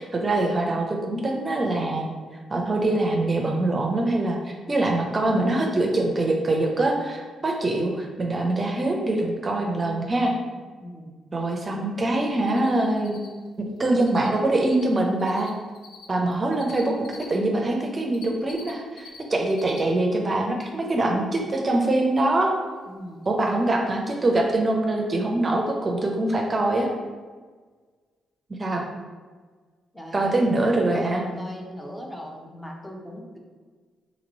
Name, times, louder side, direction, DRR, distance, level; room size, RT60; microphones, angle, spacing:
voice 1, 0.0-2.1 2.5-10.3 11.3-13.2 13.8-15.5 16.1-17.0 17.3-22.5 23.3-26.9 28.6-28.8 30.1-31.2, right 2 dB, 35° right, 1 dB, 0.6 m, -24 dB
voice 2, 10.8-11.1 22.9-23.2 29.9-33.4, equal, 10° left, 0 dB, 0.8 m, -39 dB
Cricket, 12.5-12.7 13.0-14.3 14.5-17.3 17.8-19.2 19.4-19.8 20.1-20.2 22.7-22.8 23.2-23.3 23.5-23.6, left 6 dB, 80° left, 0.5 m, -46 dB
2.9 x 2.9 x 4.0 m, 1.4 s
supercardioid pair, 55°, 0 cm